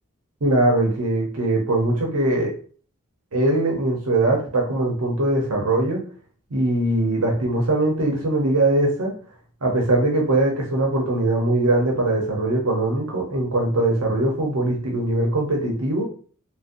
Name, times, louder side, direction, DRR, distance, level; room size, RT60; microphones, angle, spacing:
voice 1, 0.4-2.5 3.3-6.0 6.5-9.1 9.6-16.1, right 2 dB, 85° right, 0 dB, 0.8 m, -21 dB
3.9 x 2.1 x 2.6 m, 0.42 s
head